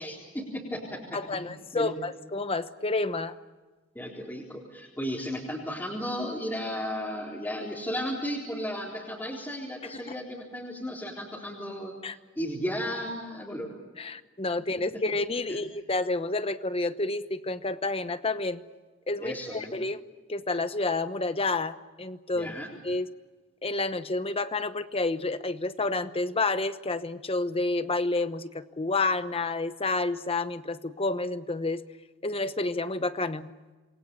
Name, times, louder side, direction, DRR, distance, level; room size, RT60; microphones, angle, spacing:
voice 1, 0.0-1.4 1.7-1.9 3.9-11.9 12.4-13.8 14.9-15.0 15.5-15.6 19.2-19.7 22.3-22.7, equal, 10° left, -5 dB, 4.1 m, -34 dB
voice 2, 1.1-3.3 9.8-10.0 12.0-12.2 14.0-18.6 19.1-20.0 20.3-22.5 22.8-23.1 23.6-31.8 32.2-33.5, left 3 dB, 30° left, 12 dB, 1.0 m, -29 dB
28.0 x 22.5 x 7.1 m, 1.3 s
head